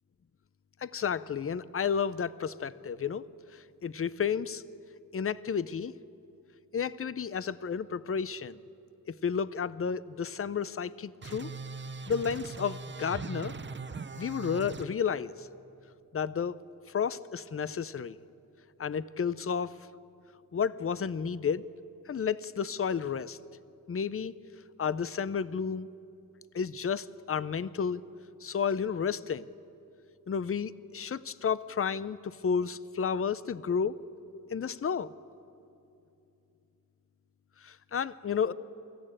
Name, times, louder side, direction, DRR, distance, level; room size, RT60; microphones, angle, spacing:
voice 1, 0.8-3.2 3.5-4.6 5.1-5.9 6.7-8.6 9.1-11.5 12.1-13.5 14.1-15.5 16.1-16.6 16.9-18.2 18.8-19.7 20.5-21.7 22.1-23.4 23.9-24.3 24.8-25.9 26.5-28.0 28.4-29.5 30.3-33.9 34.3-35.1 37.6-38.5, left 6 dB, 40° left, 17 dB, 0.6 m, -32 dB
sound 1, 11.2-14.9, right 4 dB, 35° right, 0.7 m, -40 dB
24.0 x 14.5 x 8.8 m, 2.7 s
cardioid pair, 70°, 35 cm